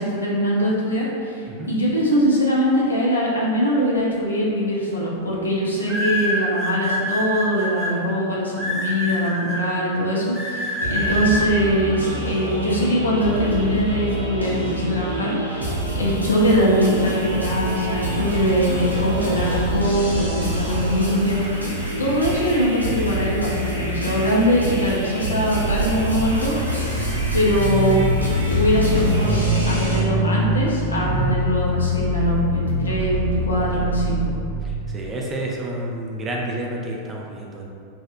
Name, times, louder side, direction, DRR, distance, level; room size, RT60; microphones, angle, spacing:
voice 1, 0.0-21.6 22.0-26.5 27.3-28.0 28.4-29.4 29.7-34.3, equal, 75° left, -5 dB, 0.5 m, -22 dB
sound 1, 4.4-4.7 5.9-7.9 8.6-9.6 10.3-11.4, equal, ahead, 1.0 m, -25 dB
sound 2, 10.8-30.0, right 1 dB, 85° right, 0.4 m, -26 dB
sound 3, 25.6-34.7, equal, 40° left, 0.7 m, -24 dB
voice 2, 34.9-37.7, right 1 dB, 20° right, -2 dB, 0.4 m, -29 dB
2.7 x 2.0 x 2.5 m, 2.3 s
figure-of-eight pair, 90°, 0 cm